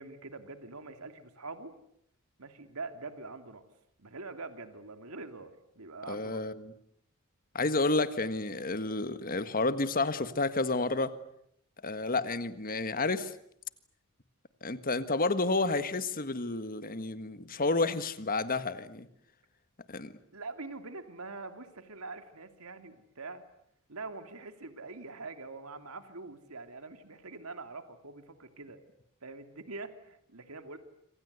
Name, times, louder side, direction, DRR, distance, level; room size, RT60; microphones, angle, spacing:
voice 1, 0.0-1.7 2.4-3.6 4.0-5.5 5.8-6.4 20.3-23.4 23.9-28.8 29.2-30.8, right 3 dB, 80° right, 8 dB, 2.6 m, -44 dB
voice 2, 6.1-6.7 7.6-11.2 11.8-13.3 14.6-19.1 19.9-20.1, left 3 dB, 40° left, 12 dB, 1.6 m, -30 dB
27.0 x 26.0 x 8.1 m, 0.71 s
head